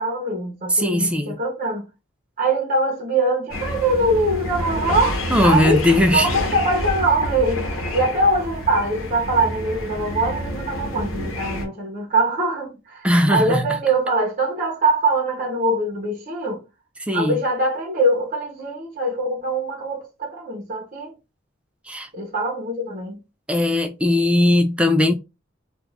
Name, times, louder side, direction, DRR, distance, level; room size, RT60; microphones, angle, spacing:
voice 1, 0.0-1.9 2.4-5.8 6.1-16.6 17.1-21.1 22.1-23.2, right 2 dB, 40° right, 0.8 m, -23 dB
voice 2, 0.7-1.4 5.3-6.3 13.0-13.7 17.0-17.4 21.9-22.1 23.5-25.1, left 1 dB, 5° right, 0.3 m, -18 dB
sound 1, 3.5-11.6, left 1 dB, 85° left, 1.0 m, -28 dB
2.4 x 2.4 x 3.2 m
head